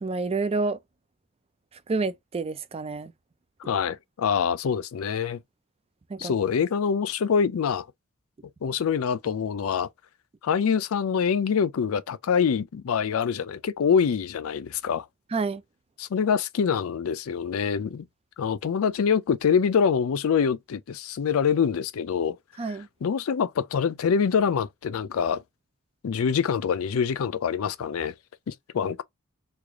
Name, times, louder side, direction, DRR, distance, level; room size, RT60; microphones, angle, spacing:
voice 1, 0.0-0.8 1.9-3.1 6.1-6.3 15.3-15.6 22.6-22.9, right 3 dB, 30° right, 0.4 m, -28 dB
voice 2, 3.6-5.4 6.2-7.9 8.6-9.9 10.4-15.1 16.0-18.0 18.4-22.4 23.0-25.4 26.0-28.1 28.5-29.0, left 6 dB, 70° left, 0.4 m, -25 dB
3.2 x 2.5 x 3.4 m
head